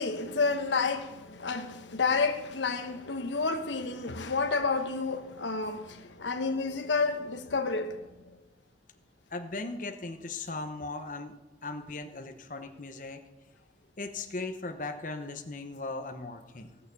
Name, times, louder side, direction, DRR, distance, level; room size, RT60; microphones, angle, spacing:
voice 1, 0.0-8.0, left 4 dB, 85° left, 1.1 m, -30 dB
voice 2, 9.3-11.3 11.6-13.2 14.0-16.8, left 3 dB, 45° left, 0.9 m, -38 dB
17.0 x 6.8 x 6.9 m
head